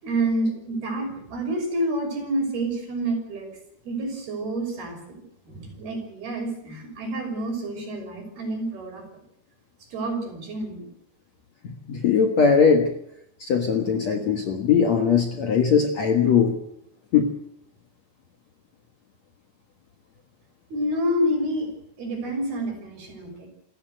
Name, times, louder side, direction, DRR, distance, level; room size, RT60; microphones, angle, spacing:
voice 1, 0.0-3.5 3.8-9.2 9.9-10.9 20.7-21.7 22.0-23.5, right 1 dB, 60° right, 3 dB, 7.8 m, -28 dB
voice 2, 11.9-12.9 13.4-16.5 17.1-17.3, left 6 dB, 55° left, 4 dB, 2.2 m, -20 dB
28.0 x 14.0 x 8.0 m, 0.77 s
omnidirectional pair, 4.9 m